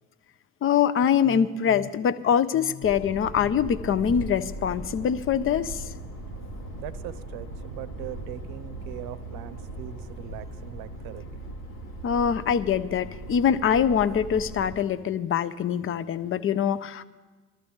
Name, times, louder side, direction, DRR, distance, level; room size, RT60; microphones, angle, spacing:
voice 1, 0.6-5.8 12.0-17.0, left 8 dB, 30° left, 15 dB, 0.6 m, -24 dB
sound 1, 2.8-14.7, right 1 dB, 75° left, 1.9 m, -39 dB
voice 2, 6.8-11.3, right 12 dB, 55° right, 14 dB, 0.8 m, -41 dB
21.0 x 14.0 x 3.5 m, 1.3 s
figure-of-eight pair, 60°, 45 cm